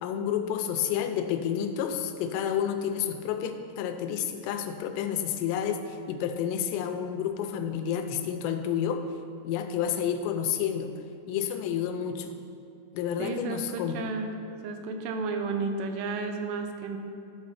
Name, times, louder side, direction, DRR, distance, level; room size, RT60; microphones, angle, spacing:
voice 1, 0.0-9.0 9.4-10.9 11.3-12.4 12.9-13.9, left 8 dB, 90° left, 6 dB, 2.8 m, -30 dB
voice 2, 13.2-14.3 14.6-17.0, right 4 dB, 80° right, 5 dB, 2.8 m, -32 dB
11.5 x 4.2 x 5.6 m, 2.6 s
omnidirectional pair, 4.9 m